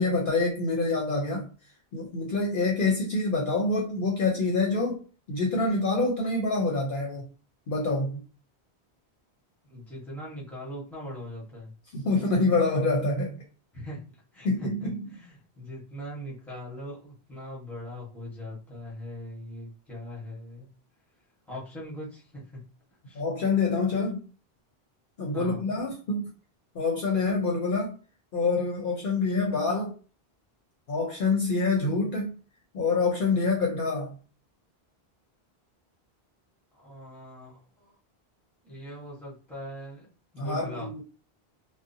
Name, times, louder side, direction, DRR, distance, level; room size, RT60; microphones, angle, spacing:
voice 1, 0.0-1.5 1.9-5.0 5.3-7.3 7.7-8.2 11.9-13.4 14.4-15.0 23.1-24.2 25.2-26.3 26.7-27.9 28.3-29.9 30.9-32.3 32.7-34.2 40.4-41.0, left 3 dB, 60° left, -1 dB, 0.7 m, -26 dB
voice 2, 9.6-11.7 13.7-14.0 14.3-20.7 21.5-22.6 23.1-23.2 25.3-25.7 36.7-37.9 38.6-40.1 40.3-40.9, equal, ahead, -6 dB, 1.1 m, -41 dB
2.5 x 2.1 x 2.6 m, 0.35 s
omnidirectional pair, 1.1 m